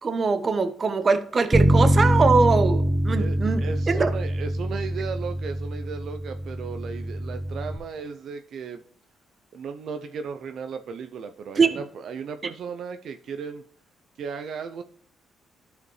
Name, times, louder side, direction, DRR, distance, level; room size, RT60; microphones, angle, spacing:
voice 1, 0.0-3.6 3.9-4.1 11.6-11.7, right 4 dB, 35° right, 10 dB, 1.0 m, -22 dB
Bass guitar, 1.5-7.8, right 1 dB, 10° right, 0.7 m, -24 dB
voice 2, 3.2-8.8 9.5-13.6 14.2-14.8, right 6 dB, 65° right, 7 dB, 0.5 m, -35 dB
12.5 x 5.0 x 3.1 m, 0.64 s
cardioid pair, 90°, 0 cm